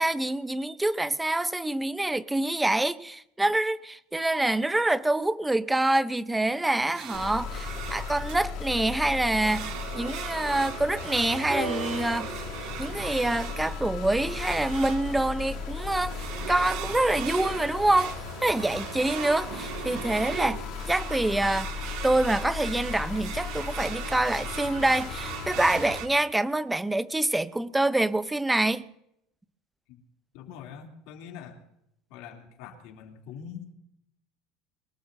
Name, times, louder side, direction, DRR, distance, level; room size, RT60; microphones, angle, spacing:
voice 1, 0.0-12.3 12.8-16.2 16.5-18.1 18.4-20.6 20.9-21.7 22.0-28.8, right 2 dB, 5° right, 0.6 m, -26 dB
sound 1, 6.6-26.1, right 10 dB, 60° right, 1.9 m, -39 dB
sound 2, 7.1-26.0, left 5 dB, 45° left, 5.5 m, -37 dB
sound 3, 11.5-15.3 16.3-16.4, right 1 dB, 25° right, 7.6 m, -39 dB
voice 2, 30.3-31.6 32.1-33.7, left 7 dB, 65° left, 2.8 m, -44 dB
23.5 x 21.5 x 2.7 m
cardioid pair, 165°, 0 cm